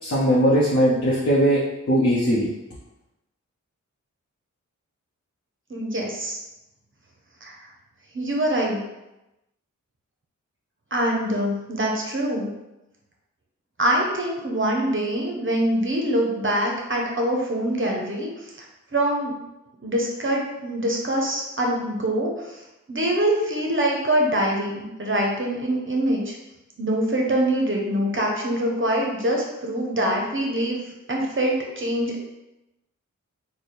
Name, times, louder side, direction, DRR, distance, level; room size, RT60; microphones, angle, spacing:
voice 1, 0.0-2.5, equal, 45° left, -6 dB, 0.8 m, -20 dB
voice 2, 5.7-6.4 7.4-7.7 8.1-8.8 10.9-12.5 13.8-18.6 18.9-19.4 19.8-22.6 22.9-26.3 26.8-30.8 31.1-32.2, right 1 dB, 40° right, -1 dB, 0.8 m, -24 dB
3.3 x 2.2 x 4.3 m, 0.95 s
wide cardioid pair, 65°, 31 cm